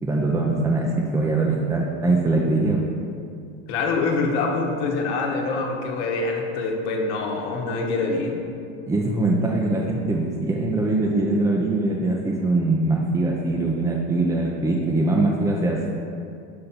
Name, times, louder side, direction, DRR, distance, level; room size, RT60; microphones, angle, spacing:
voice 1, 0.0-2.9 8.8-15.8, right 2 dB, 10° right, -2 dB, 0.5 m, -22 dB
voice 2, 3.7-8.3, left 3 dB, 70° left, 1 dB, 1.2 m, -25 dB
6.8 x 4.2 x 4.1 m, 2.5 s
hypercardioid pair, 95°, 36 cm